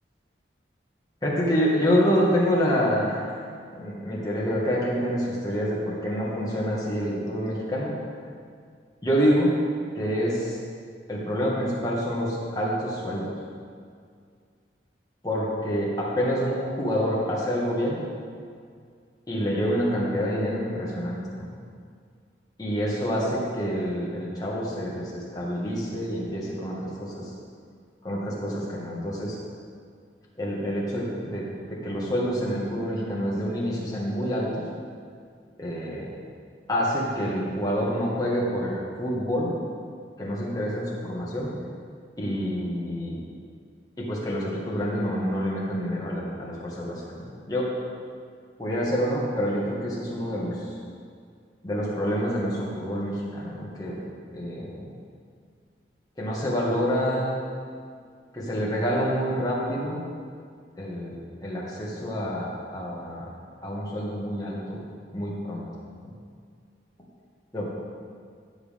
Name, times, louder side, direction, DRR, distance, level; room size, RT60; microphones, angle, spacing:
voice 1, 1.2-7.9 9.0-9.5 9.9-10.6 11.1-13.3 15.2-18.0 19.3-21.5 22.6-27.3 28.0-29.4 30.4-34.6 35.6-36.1 36.7-39.5 40.2-41.5 42.2-43.2 44.0-47.7 48.6-50.6 51.6-54.0 54.3-54.9 56.2-57.4 58.3-60.0 60.8-63.3 63.6-64.8 65.1-65.6 66.0-66.1 67.5-67.8, equal, 20° left, -5 dB, 2.0 m, -27 dB
14.5 x 7.2 x 3.8 m, 2.2 s
head